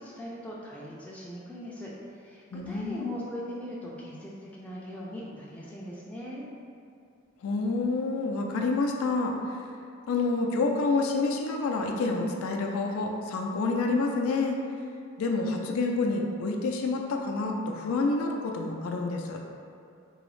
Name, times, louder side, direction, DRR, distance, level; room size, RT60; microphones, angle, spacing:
voice 1, 0.0-6.4, equal, 5° left, -6 dB, 0.3 m, -40 dB
voice 2, 2.5-3.2 7.4-9.4 10.1-14.6 15.2-19.4, left 3 dB, 85° left, 1 dB, 0.4 m, -28 dB
3.8 x 2.0 x 3.0 m, 2.5 s
head